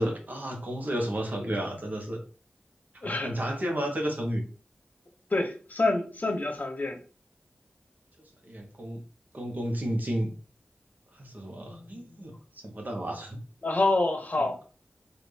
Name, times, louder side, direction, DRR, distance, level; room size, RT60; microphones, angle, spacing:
voice 1, 0.0-2.2 3.0-4.4 8.4-9.0 9.3-10.3 11.1-12.3 12.6-13.4, equal, 50° right, 1 dB, 1.2 m, -32 dB
voice 2, 3.0-3.3 5.3-7.0 11.7-12.0 13.6-14.6, left 2 dB, 45° left, 5 dB, 0.8 m, -27 dB
4.2 x 2.6 x 3.4 m, 0.39 s
wide cardioid pair, 55°, 4 cm